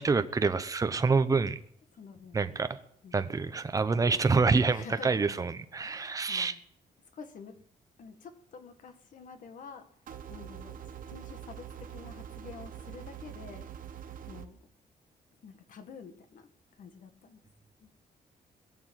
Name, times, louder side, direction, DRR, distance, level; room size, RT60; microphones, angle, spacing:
voice 1, 0.0-1.6 2.3-2.8 3.1-6.6, right 4 dB, 20° right, 10 dB, 0.9 m, -27 dB
voice 2, 1.9-2.4 3.0-3.2 4.7-5.5 5.8-6.6 7.1-7.6 8.0-9.9 10.3-10.8 11.1-13.7 14.3-14.6 15.4-16.5 16.8-17.4 17.8-17.9, left 5 dB, 60° left, 8 dB, 1.9 m, -48 dB
sound 1, 10.1-14.5, right 9 dB, 65° right, 1.3 m, -44 dB
21.0 x 7.0 x 9.2 m, 0.66 s
wide cardioid pair, 165°, 15 cm